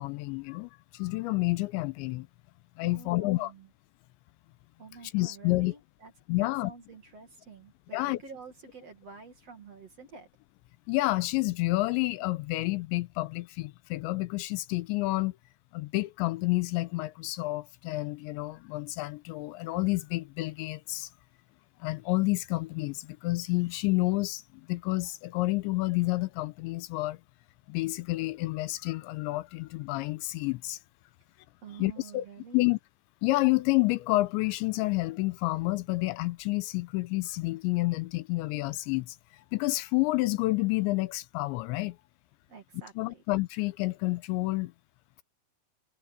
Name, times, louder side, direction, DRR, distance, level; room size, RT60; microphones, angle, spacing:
voice 1, 0.0-2.3 2.8-3.5 5.1-5.7 6.3-6.7 7.9-8.2 10.9-15.4 15.7-21.1 21.8-24.4 24.7-27.2 27.7-30.8 31.8-32.2 32.5-32.8 33.2-39.2 39.5-42.0 43.0-44.7, left 21 dB, 85° left, 3.0 m, -29 dB
voice 2, 2.8-3.7 4.8-6.1 6.4-10.3 31.6-32.8 42.5-43.2, right 5 dB, 40° right, 2.7 m, -49 dB
omnidirectional pair, 5.2 m